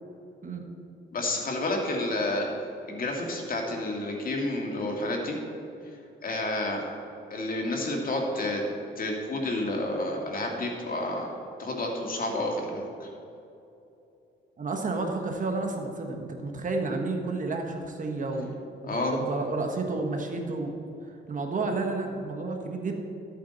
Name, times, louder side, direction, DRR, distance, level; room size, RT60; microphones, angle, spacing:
voice 1, 1.1-2.5 2.9-5.4 6.2-6.8 7.3-8.6 9.0-13.1 18.8-19.2, left 2 dB, 45° left, 0 dB, 2.2 m, -30 dB
voice 2, 14.6-18.5 18.8-20.7 21.0-22.9, right 3 dB, 40° right, 3 dB, 1.4 m, -31 dB
13.0 x 8.6 x 4.1 m, 2.8 s
cardioid pair, 90°, 20 cm